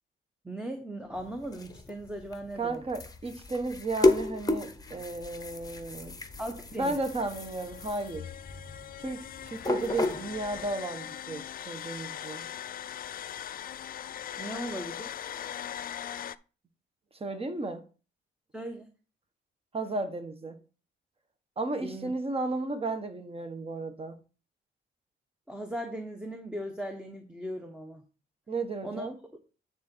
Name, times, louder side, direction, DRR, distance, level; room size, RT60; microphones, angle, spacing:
voice 1, 0.4-2.8 6.4-7.0 14.4-15.1 18.5-18.9 21.8-22.1 25.5-28.0 28.8-29.1, right 1 dB, 5° right, 1.0 m, -38 dB
sound 1, 1.1-10.7, left 2 dB, 20° left, 0.9 m, -33 dB
voice 2, 2.6-6.1 6.8-8.3 9.0-12.5 17.2-17.8 19.7-20.6 21.6-24.2 28.5-29.2, right 2 dB, 30° right, 1.3 m, -34 dB
sound 2, 4.9-16.4, left 10 dB, 45° left, 0.4 m, -41 dB
9.3 x 3.9 x 4.5 m
cardioid pair, 90°, 20 cm